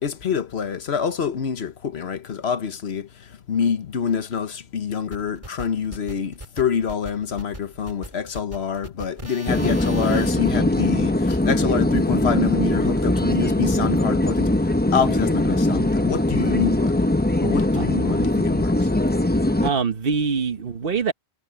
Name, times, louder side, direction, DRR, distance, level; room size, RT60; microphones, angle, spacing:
voice 1, 0.0-3.1 3.5-14.5 14.9-16.9 17.4-18.7, left 7 dB, 80° left, 1.3 m, -26 dB
sound 1, 5.1-10.3, right 1 dB, 30° right, 5.7 m, -40 dB
sound 2, 9.5-19.7, left 1 dB, 10° left, 0.8 m, -21 dB
voice 2, 19.3-21.1, right 5 dB, 60° right, 1.3 m, -24 dB
omnidirectional pair, 1.1 m